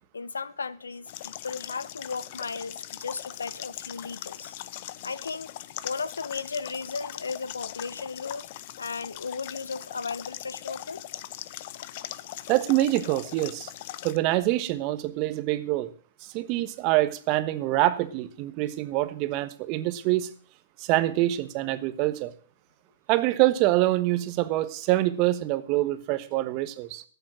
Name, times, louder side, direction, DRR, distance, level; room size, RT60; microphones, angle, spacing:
voice 1, 0.1-4.5 5.0-5.5 5.8-8.5 8.8-11.0, left 4 dB, 90° left, 0.7 m, -35 dB
sound 1, 1.1-14.2, left 14 dB, 50° left, 0.7 m, -40 dB
voice 2, 12.5-13.7 14.0-15.9 16.2-20.3 20.8-22.3 23.1-27.0, right 16 dB, 40° right, 1.3 m, -25 dB
13.0 x 7.2 x 7.7 m
hypercardioid pair, 120°, 0 cm